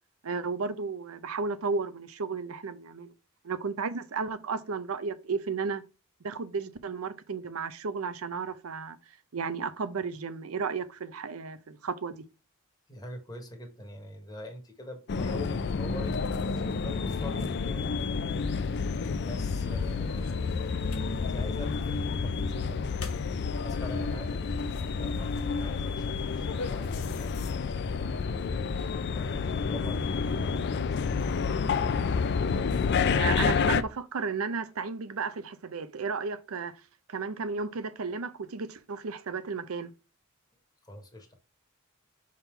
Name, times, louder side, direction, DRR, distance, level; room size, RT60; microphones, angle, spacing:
voice 1, 0.2-3.1 3.4-5.8 6.2-9.0 9.3-12.2 33.0-36.7 37.1-39.9, right 5 dB, 85° right, 0.6 m, -33 dB
voice 2, 12.9-18.0 19.0-22.9 23.6-28.6 29.1-31.1 40.8-41.3, left 1 dB, 20° left, 1.3 m, -44 dB
sound 1, 15.1-33.8, left 5 dB, 55° left, 0.4 m, -29 dB
sound 2, 18.3-27.6, left 3 dB, 85° left, 1.1 m, -46 dB
5.8 x 3.7 x 4.4 m
head